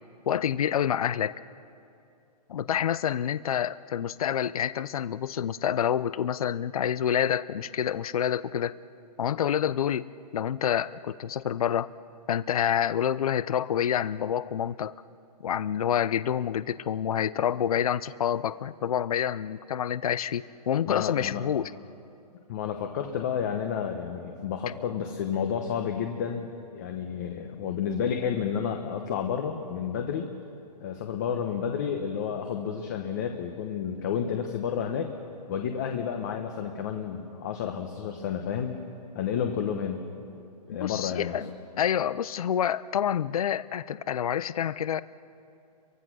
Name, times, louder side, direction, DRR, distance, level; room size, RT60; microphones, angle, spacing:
voice 1, 0.3-1.3 2.5-8.8 9.2-10.1 10.3-11.9 12.3-14.9 15.4-21.7 40.7-41.5 41.8-45.0, left 9 dB, 60° left, 17 dB, 0.6 m, -27 dB
voice 2, 20.8-21.5 22.5-26.5 26.7-30.3 30.8-35.1 35.5-38.8 39.1-40.1 40.7-41.4, left 7 dB, 25° left, 4 dB, 1.0 m, -31 dB
29.5 x 23.5 x 6.2 m, 2.6 s
hypercardioid pair, 175°, 21 cm